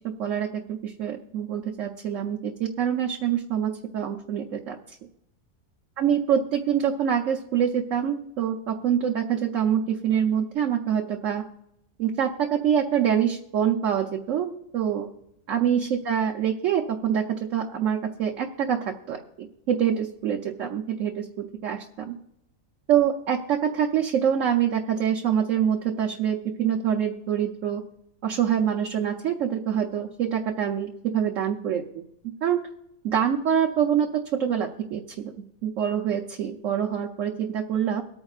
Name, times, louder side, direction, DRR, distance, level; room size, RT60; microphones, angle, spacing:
voice 1, 0.2-5.0 6.0-11.4 12.0-15.1 15.5-22.1 22.9-27.8 28.2-32.0 32.4-32.6 33.0-35.3 35.6-38.0, right 9 dB, 65° right, 2 dB, 1.1 m, -25 dB
25.0 x 8.9 x 2.4 m, 0.82 s
omnidirectional pair, 1.6 m